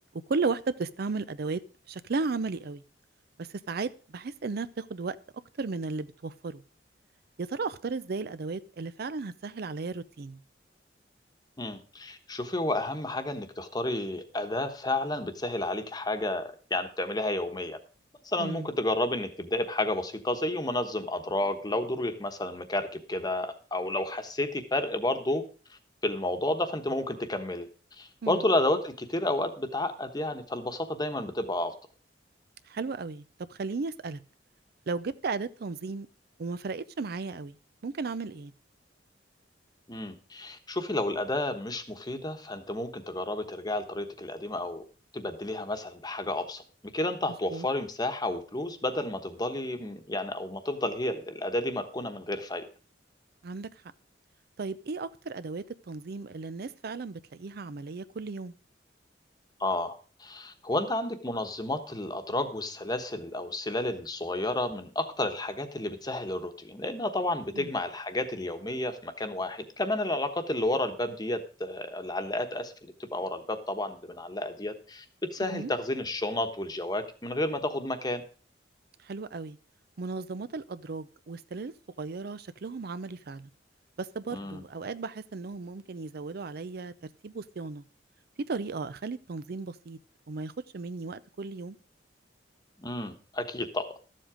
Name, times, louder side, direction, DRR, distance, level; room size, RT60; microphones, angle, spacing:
voice 1, 0.1-1.6 1.9-2.8 3.4-5.2 5.6-6.6 7.4-10.4 18.4-18.7 28.2-28.4 32.7-34.2 34.9-36.1 36.4-37.6 37.8-38.5 47.5-47.7 53.4-53.7 54.6-58.5 67.5-67.7 75.5-75.7 79.0-79.6 80.0-83.5 84.0-86.9 87.2-87.8 88.5-90.0 90.3-91.8, right 4 dB, 55° right, 14 dB, 0.5 m, -35 dB
voice 2, 11.6-17.8 18.2-25.4 25.7-27.7 28.0-31.7 39.9-44.8 45.1-46.6 46.9-52.6 59.6-75.0 75.3-78.2 84.3-84.6 92.8-93.9, left 1 dB, 20° left, 7 dB, 1.1 m, -31 dB
13.0 x 7.6 x 5.0 m, 0.38 s
head